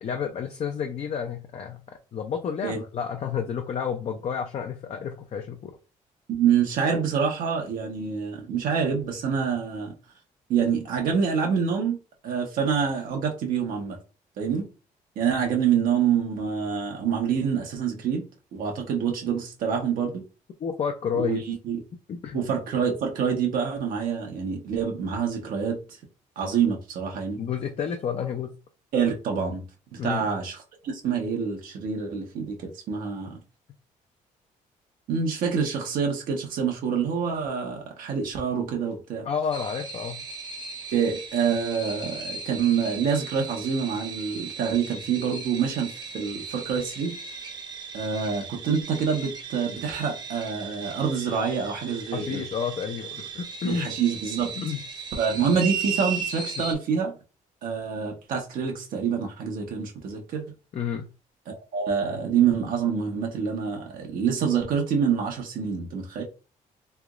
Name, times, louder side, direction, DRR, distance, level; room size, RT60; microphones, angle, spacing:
voice 1, 0.0-5.8 20.6-21.4 22.1-22.5 27.4-28.6 30.0-30.3 39.2-40.2 52.1-53.9 54.6-54.8 56.6-56.7 60.7-61.1, left 7 dB, 50° left, 0.5 m, -30 dB
voice 2, 6.3-9.9 10.5-12.0 12.2-14.0 14.4-14.7 15.2-18.2 18.5-20.2 21.1-21.8 22.3-25.8 26.4-27.4 28.9-29.6 29.9-30.6 30.8-33.4 35.1-39.3 40.9-47.2 47.9-52.4 53.7-54.5 55.2-57.1 57.6-60.4 61.5-66.2, right 6 dB, 80° right, 1.0 m, -26 dB
sound 1, 39.5-56.7, right 5 dB, 30° right, 0.7 m, -37 dB
3.3 x 2.9 x 2.4 m
cardioid pair, 105°, 14 cm